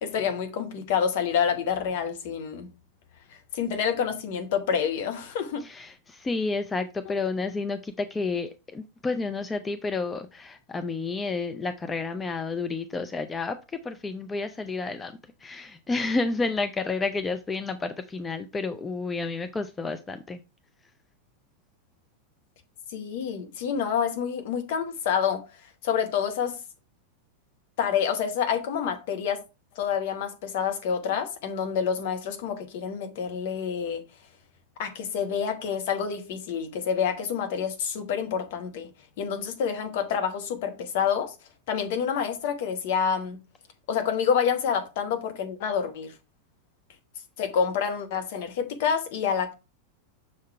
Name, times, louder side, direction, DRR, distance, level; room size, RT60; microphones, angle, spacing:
voice 1, 0.0-2.7 3.5-5.6 22.9-25.4 25.8-26.6 27.8-29.4 29.7-34.0 34.8-38.9 39.2-41.3 41.7-43.4 43.9-46.1 47.4-49.5, left 7 dB, 50° left, 1.1 m, -28 dB
voice 2, 5.6-15.1 15.4-20.4, left 3 dB, 15° left, 0.5 m, -30 dB
6.3 x 3.7 x 4.5 m
figure-of-eight pair, 90°, 0 cm